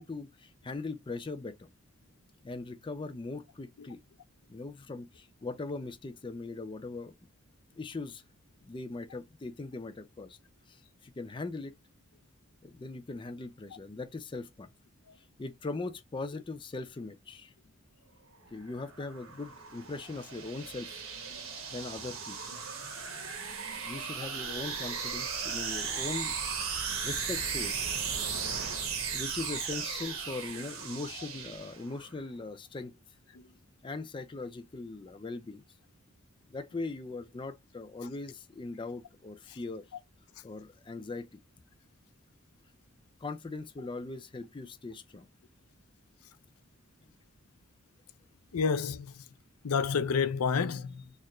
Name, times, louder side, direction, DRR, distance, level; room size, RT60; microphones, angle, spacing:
voice 1, 0.0-1.7 2.4-4.0 4.5-7.1 7.8-8.2 8.7-10.4 10.7-11.7 12.6-14.7 15.4-17.5 18.5-21.0 21.7-22.4 23.8-26.3 27.0-27.8 29.1-33.0 33.8-35.6 36.5-39.8 40.4-41.3 43.2-45.3, left 3 dB, 20° left, 0.4 m, -40 dB
sound 1, 18.6-32.1, right 6 dB, 70° right, 1.2 m, -36 dB
voice 2, 48.5-49.2 49.6-51.0, left 5 dB, 90° left, 0.5 m, -29 dB
4.3 x 2.4 x 3.0 m
head